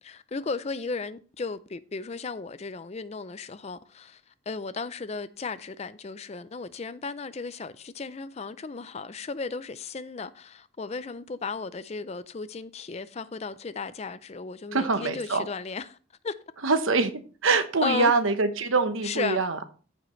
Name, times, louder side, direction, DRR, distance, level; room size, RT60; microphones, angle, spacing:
voice 1, 0.0-4.2 4.5-16.0 16.2-16.3 17.8-18.1 19.0-19.4, left 4 dB, 30° left, 0.4 m, -35 dB
voice 2, 14.7-15.4 16.6-17.1 17.4-19.6, right 3 dB, 75° right, 1.0 m, -24 dB
15.0 x 5.1 x 3.1 m
head